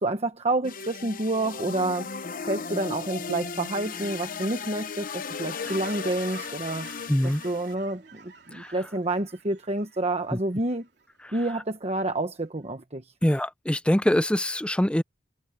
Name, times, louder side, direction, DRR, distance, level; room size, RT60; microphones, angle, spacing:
voice 1, 0.0-2.1 2.5-6.9 7.2-10.9 11.3-13.1, right 2 dB, 35° right, 1.2 m, -29 dB
sound 1, 0.6-7.7, left 5 dB, 50° left, 0.8 m, -36 dB
Fowl / Chirp tweet, 5.7-11.5 11.9-12.1, right 5 dB, 65° right, 3.1 m, -50 dB
voice 2, 7.1-7.4 8.5-8.7 10.3-10.4 13.2-15.0, equal, 5° left, 0.6 m, -24 dB
head